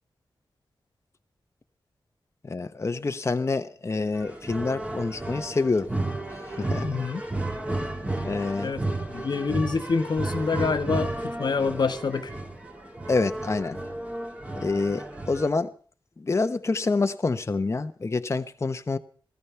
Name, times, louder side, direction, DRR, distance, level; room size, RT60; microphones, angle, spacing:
voice 1, 2.4-5.9 6.6-6.9 8.2-8.7 13.1-13.8 14.6-15.7 16.2-19.0, left 3 dB, 35° left, 1.0 m, -27 dB
sound 1, 4.1-15.5, right 2 dB, 15° right, 2.5 m, -33 dB
voice 2, 6.8-7.2 8.6-12.3, left 4 dB, 55° left, 1.1 m, -27 dB
17.5 x 14.0 x 5.7 m
wide cardioid pair, 105°, 9 cm